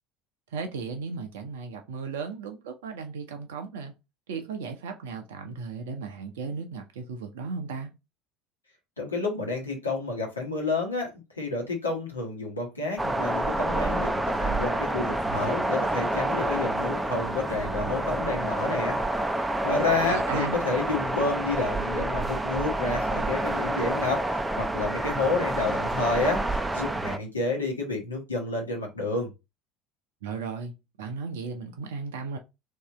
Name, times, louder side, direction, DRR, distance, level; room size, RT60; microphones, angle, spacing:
voice 1, 0.5-3.9 4.3-7.9 20.0-20.6 30.2-32.4, right 5 dB, 65° right, 0.6 m, -35 dB
voice 2, 9.0-11.1 11.4-19.0 19.6-29.3, left 3 dB, 85° left, 1.2 m, -29 dB
sound 1, 13.0-27.2, right 1 dB, 10° right, 0.5 m, -28 dB
3.1 x 2.8 x 3.6 m
figure-of-eight pair, 65°, 0 cm